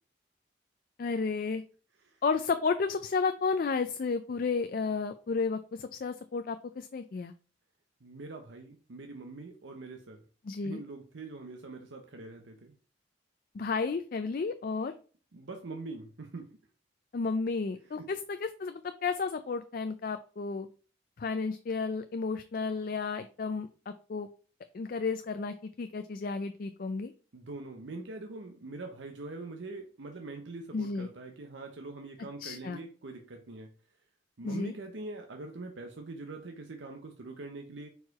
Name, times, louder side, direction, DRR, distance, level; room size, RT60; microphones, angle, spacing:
voice 1, 1.0-1.6 2.2-7.3 10.4-10.8 13.5-14.9 17.1-20.7 21.2-24.3 24.7-27.1 30.7-31.1 32.4-32.8 34.4-34.7, left 4 dB, 50° left, 9 dB, 0.4 m, -32 dB
voice 2, 8.0-10.2 10.6-12.7 15.3-16.5 17.9-18.1 27.3-33.7 34.4-37.9, right 3 dB, 85° right, 4 dB, 0.8 m, -43 dB
4.6 x 4.5 x 4.7 m, 0.40 s
head